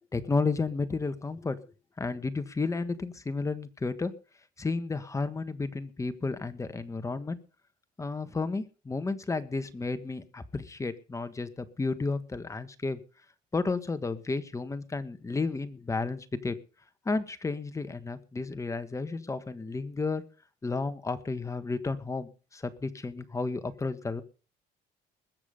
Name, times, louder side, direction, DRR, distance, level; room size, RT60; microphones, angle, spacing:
voice 1, 0.1-1.6 2.0-4.1 4.6-7.4 8.0-13.0 13.5-16.5 17.0-20.2 20.6-24.2, left 3 dB, 20° left, 10 dB, 1.5 m, -32 dB
21.0 x 7.3 x 5.2 m, 0.36 s
cardioid pair, 110°, 17 cm